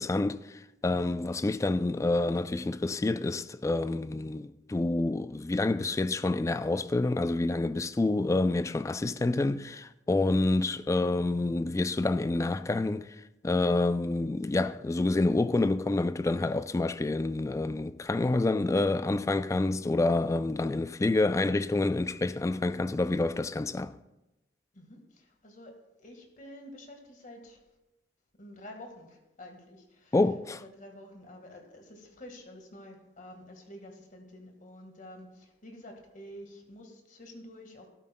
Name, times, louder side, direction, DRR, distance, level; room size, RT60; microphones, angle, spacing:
voice 1, 0.0-13.1 13.4-23.9 30.1-30.6, left 2 dB, 15° left, 0.3 m, -28 dB
voice 2, 24.7-27.6 28.4-30.1 30.6-37.9, left 1 dB, 45° left, 1.7 m, -49 dB
12.5 x 12.5 x 2.2 m
head